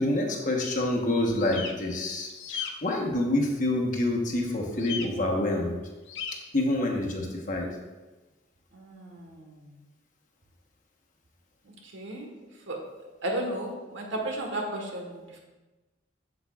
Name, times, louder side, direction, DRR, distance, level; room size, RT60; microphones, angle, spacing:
voice 1, 0.0-5.8 6.5-7.7, left 1 dB, 45° left, 1 dB, 1.1 m, -27 dB
sound 1, 1.3-1.7 2.3-2.7 4.8-5.1 6.1-6.3, left 7 dB, 70° left, 0.7 m, -35 dB
voice 2, 8.7-9.7 11.7-12.3 12.7-12.8 13.2-15.4, right 1 dB, 85° right, 1 dB, 1.4 m, -34 dB
8.3 x 7.3 x 2.4 m, 1.2 s
head